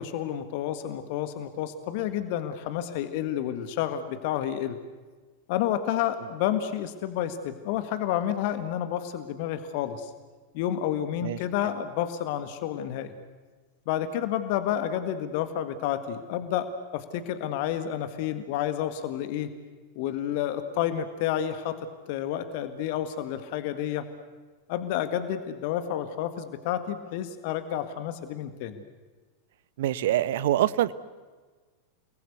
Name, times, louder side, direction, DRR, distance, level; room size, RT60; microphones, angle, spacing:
voice 1, 0.0-4.8 5.5-10.1 10.5-13.1 13.9-19.5 19.9-21.8 22.1-24.1 24.7-28.8, left 10 dB, 50° left, 10 dB, 1.7 m, -30 dB
voice 2, 29.8-30.9, right 13 dB, 55° right, 17 dB, 1.0 m, -25 dB
29.5 x 20.5 x 8.3 m, 1.4 s
figure-of-eight pair, 90°, 0 cm